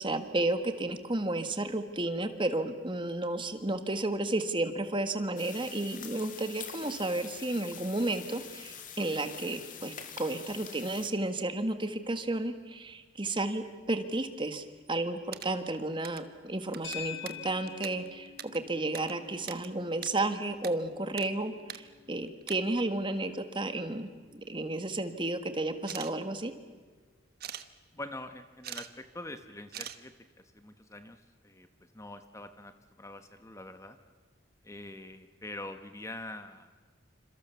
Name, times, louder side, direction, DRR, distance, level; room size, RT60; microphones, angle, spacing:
voice 1, 0.0-26.5, right 2 dB, 25° right, 8 dB, 1.7 m, -32 dB
sound 1, 5.4-11.1, left 8 dB, 45° left, 2.3 m, -45 dB
sound 2, 15.0-16.3 16.6-19.7 19.9-20.7 21.0-21.3 21.6-21.8 22.2-22.6 23.5-23.6 24.0-24.6 25.8-26.1 27.4-27.7 28.4-28.9 29.1-29.2 29.7-30.0, right 10 dB, 50° right, 1.2 m, -42 dB
sound 3, 16.8-25.3, left 10 dB, 65° left, 5.9 m, -48 dB
voice 2, 27.9-31.7 31.9-34.0 34.6-36.9, left 2 dB, 15° left, 8 dB, 1.0 m, -45 dB
28.0 x 26.5 x 7.1 m, 1.5 s
head